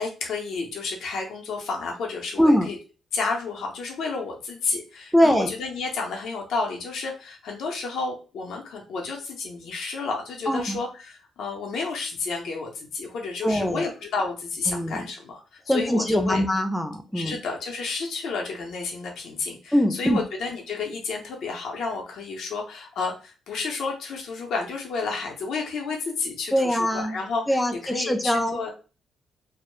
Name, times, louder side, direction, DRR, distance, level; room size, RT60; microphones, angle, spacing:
voice 1, 0.0-2.8 3.1-16.4 17.1-28.7, left 4 dB, 75° left, 1 dB, 0.6 m, -31 dB
voice 2, 2.4-2.7 5.1-5.5 10.5-10.8 13.4-13.8 14.7-15.1 15.7-17.4 19.7-20.2 26.5-27.2 27.5-28.7, equal, ahead, 6 dB, 0.3 m, -22 dB
2.1 x 2.0 x 3.0 m, 0.35 s
cardioid pair, 100°, 0 cm